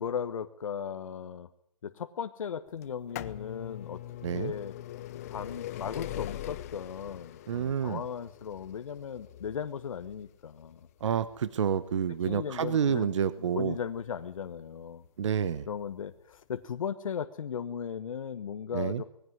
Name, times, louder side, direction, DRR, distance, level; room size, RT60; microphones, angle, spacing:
voice 1, 0.0-1.5 1.8-4.0 4.3-4.7 5.3-10.8 12.2-13.1 13.4-15.0 15.7-19.0, left 7 dB, 60° left, 10 dB, 1.2 m, -37 dB
sound 1, 2.8-14.5 15.3-15.4 16.3-16.4 16.6-16.7, left 13 dB, 25° left, 0.8 m, -43 dB
voice 2, 4.2-4.5 7.5-8.0 11.0-13.8 15.2-15.7 18.7-19.0, right 8 dB, 50° right, 15 dB, 1.1 m, -29 dB
20.5 x 16.0 x 9.4 m, 0.77 s
hypercardioid pair, 165°, 19 cm